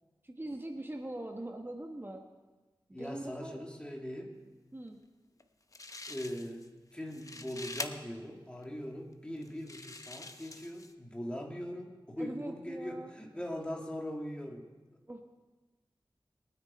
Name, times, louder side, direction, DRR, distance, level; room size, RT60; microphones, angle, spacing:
voice 1, 0.2-2.2 2.9-3.6 4.7-5.0 12.2-13.1 15.1-15.2, right 1 dB, 25° right, 3 dB, 1.3 m, -42 dB
voice 2, 2.9-4.4 6.1-14.7 14.9-15.0, equal, 10° left, 0 dB, 2.2 m, -41 dB
sound 1, 5.4-5.5 5.7-6.7 7.0-7.9 8.6-8.7 9.4-10.9, left 2 dB, 40° left, 0.8 m, -44 dB
22.5 x 9.7 x 4.3 m, 1.2 s
wide cardioid pair, 80°, 9 cm